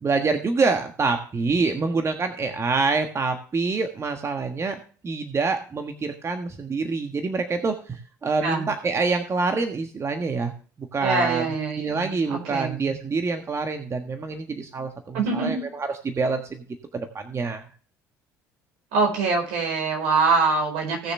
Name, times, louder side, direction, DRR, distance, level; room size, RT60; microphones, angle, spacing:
voice 1, 0.0-10.5 10.9-11.4 11.8-16.6 16.9-17.6, right 4 dB, 30° right, 6 dB, 1.4 m, -26 dB
voice 2, 11.0-12.7 15.1-15.6 18.9-21.1, right 4 dB, 70° right, 2 dB, 4.7 m, -24 dB
17.5 x 6.7 x 3.3 m, 0.41 s
hypercardioid pair, 60°, 9 cm